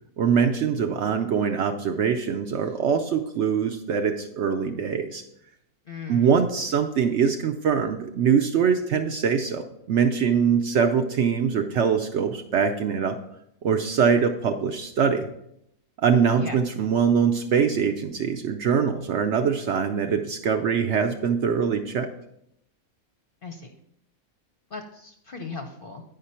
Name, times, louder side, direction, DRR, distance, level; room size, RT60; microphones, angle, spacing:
voice 1, 0.2-5.2 6.1-9.6 9.9-13.2 13.6-15.3 16.0-22.1, right 6 dB, 65° right, 6 dB, 0.7 m, -23 dB
voice 2, 5.9-6.4 16.4-16.6 23.4-23.7 24.7-26.0, left 4 dB, 50° left, 4 dB, 0.7 m, -37 dB
9.4 x 5.2 x 4.3 m, 0.76 s
omnidirectional pair, 1.6 m